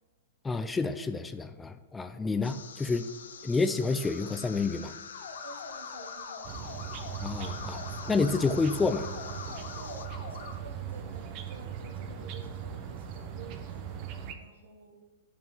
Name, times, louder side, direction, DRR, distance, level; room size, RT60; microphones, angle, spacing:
voice 1, 0.4-3.1 3.4-4.9 7.2-7.8 8.1-9.1, left 4 dB, 10° left, 10 dB, 0.4 m, -29 dB
sound 1, 2.4-10.1, left 6 dB, 80° left, 0.7 m, -46 dB
sound 2, 5.1-10.5, left 5 dB, 60° left, 1.2 m, -44 dB
voice 2, 5.4-6.8 9.7-13.9 14.4-15.0, right 3 dB, 75° right, 3 dB, 1.4 m, -50 dB
sound 3, 6.4-14.3, right 8 dB, 45° right, 0.8 m, -39 dB
9.3 x 5.6 x 3.6 m, 1.3 s
hypercardioid pair, 120°, 0 cm